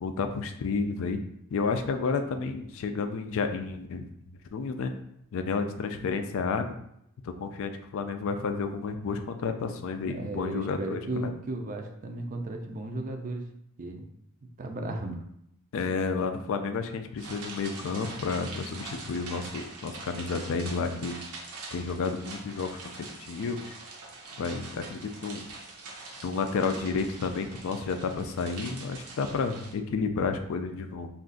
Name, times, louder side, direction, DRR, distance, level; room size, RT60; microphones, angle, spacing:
voice 1, 0.0-1.2 1.5-4.1 4.5-4.9 5.3-6.7 7.2-11.3 15.7-21.2 21.7-23.7 24.4-25.5 26.2-31.1, left 4 dB, 65° left, 7 dB, 0.3 m, -31 dB
voice 2, 10.1-13.5 13.8-14.1 14.4-15.2, right 2 dB, 40° right, 4 dB, 0.4 m, -35 dB
sound 1, 17.2-29.7, right 3 dB, 90° right, 0.7 m, -44 dB
2.5 x 2.3 x 3.7 m, 0.76 s
head